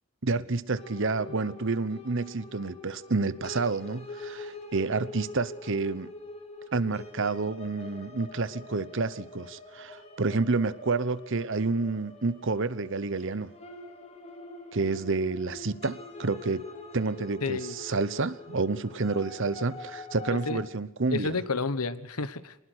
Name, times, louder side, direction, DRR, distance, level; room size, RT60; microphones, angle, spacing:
voice 1, 0.2-6.1 6.7-13.5 14.7-16.7 16.9-21.3, right 3 dB, 60° right, 1.0 m, -29 dB
sound 1, 0.8-20.6, left 2 dB, 30° left, 2.9 m, -45 dB
voice 2, 17.4-17.8 20.3-20.6 21.1-22.6, left 3 dB, 90° left, 1.3 m, -31 dB
23.5 x 20.0 x 6.4 m
head